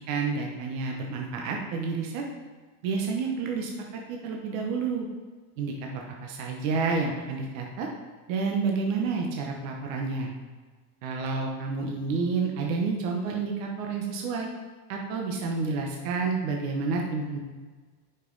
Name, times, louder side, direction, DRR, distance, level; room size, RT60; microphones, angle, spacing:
voice 1, 0.1-2.2 2.8-3.7 4.1-5.1 5.6-7.9 8.3-10.3 11.0-14.5 14.9-17.4, right 4 dB, 60° right, 1 dB, 1.1 m, -29 dB
6.6 x 5.6 x 3.9 m, 1.4 s
supercardioid pair, 160°, 45 cm